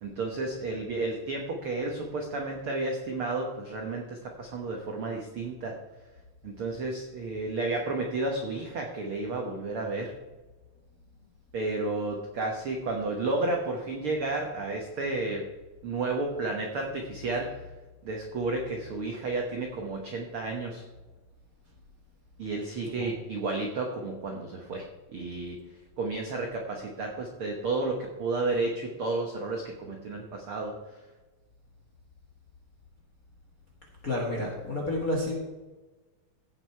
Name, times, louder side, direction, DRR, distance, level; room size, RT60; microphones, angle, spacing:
voice 1, 0.0-5.7 6.4-10.1 11.5-15.4 15.8-17.5 18.0-20.8 22.4-25.6 26.0-31.0, right 3 dB, 70° right, 1 dB, 1.3 m, -32 dB
voice 2, 34.0-35.3, left 1 dB, 40° left, -1 dB, 1.2 m, -30 dB
16.0 x 6.4 x 4.6 m, 1.2 s
omnidirectional pair, 4.1 m